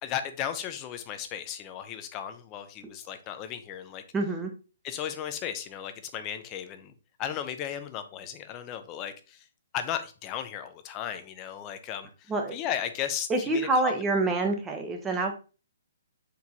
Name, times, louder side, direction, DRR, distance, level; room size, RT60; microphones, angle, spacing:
voice 1, 0.0-4.0 4.8-6.9 7.2-9.4 9.7-13.9, left 9 dB, 25° left, 0.6 m, -35 dB
voice 2, 4.1-4.5 12.3-12.5 13.3-15.3, right 2 dB, 15° right, 0.9 m, -26 dB
4.5 x 3.7 x 2.8 m
hypercardioid pair, 140°, 0 cm